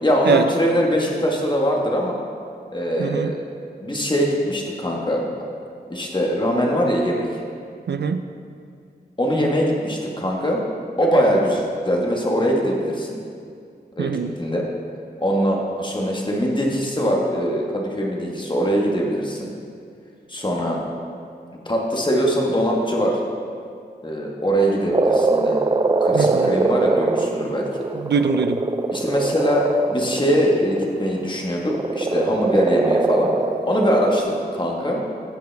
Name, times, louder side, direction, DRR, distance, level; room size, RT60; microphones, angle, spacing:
voice 1, 0.0-2.2 2.7-3.4 3.8-5.2 5.9-7.3 9.2-10.6 11.0-13.2 13.9-14.7 15.2-19.5 20.3-20.8 21.6-23.2 24.0-25.6 26.0-27.7 28.9-33.3 33.6-35.0, equal, 25° left, -2 dB, 1.5 m, -22 dB
voice 2, 3.0-3.3 7.9-8.3 14.0-14.3 26.1-26.5 28.0-28.6, right 5 dB, 80° right, 9 dB, 0.4 m, -22 dB
Frog, 24.9-30.8 31.7-34.2, right 3 dB, 25° right, 0.4 m, -22 dB
15.5 x 5.2 x 3.4 m, 2.3 s
wide cardioid pair, 85°, 17 cm